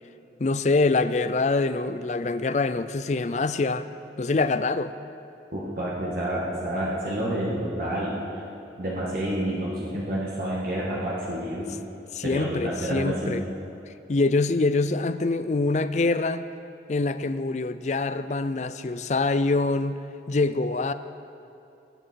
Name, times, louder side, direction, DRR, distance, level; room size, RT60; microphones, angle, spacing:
voice 1, 0.4-3.9 4.2-4.9 12.1-13.5 14.1-16.5 16.9-20.0 20.3-20.9, left 3 dB, 40° left, 13 dB, 0.4 m, -25 dB
voice 2, 5.5-8.2 8.8-11.7 12.2-13.4, right 1 dB, 50° right, -6 dB, 1.9 m, -29 dB
22.0 x 9.2 x 4.6 m, 2.7 s
head